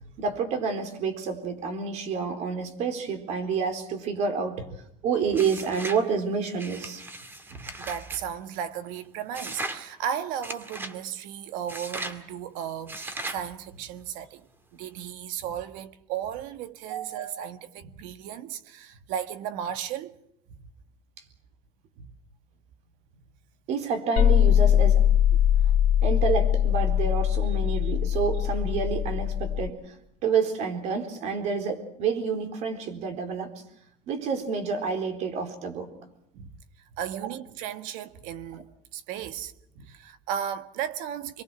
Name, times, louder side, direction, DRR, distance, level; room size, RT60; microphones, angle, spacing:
voice 1, 0.2-4.6 5.0-7.0 16.9-17.3 23.7-25.0 26.0-29.9 30.2-33.5 34.1-35.9, right 5 dB, 60° right, 4.1 m, -28 dB
sound 1, 5.3-6.0 6.6-8.2 9.3-9.8 10.4-11.0 11.7-12.2 12.9-13.4, right 2 dB, 15° right, 2.1 m, -37 dB
voice 2, 7.5-20.2 22.0-22.1 27.7-27.9 36.3-36.5 37.0-38.7 38.9-41.4, right 9 dB, 85° right, 1.6 m, -35 dB
sound 2, 24.2-29.7, left 10 dB, 60° left, 1.9 m, -22 dB
26.5 x 23.0 x 6.1 m
cardioid pair, 150°, 13 cm